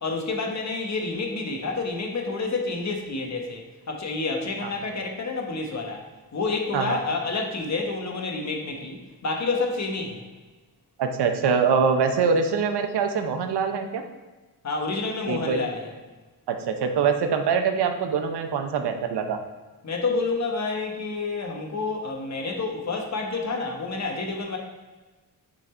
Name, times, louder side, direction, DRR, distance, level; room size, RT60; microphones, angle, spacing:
voice 1, 0.0-6.0 6.3-10.2 14.6-15.9 19.8-24.6, left 3 dB, 45° left, 2 dB, 1.1 m, -29 dB
voice 2, 11.0-14.0 15.3-15.7 16.5-19.4, right 6 dB, 90° right, 6 dB, 0.7 m, -24 dB
6.2 x 4.1 x 4.3 m, 1.3 s
wide cardioid pair, 125°, 39 cm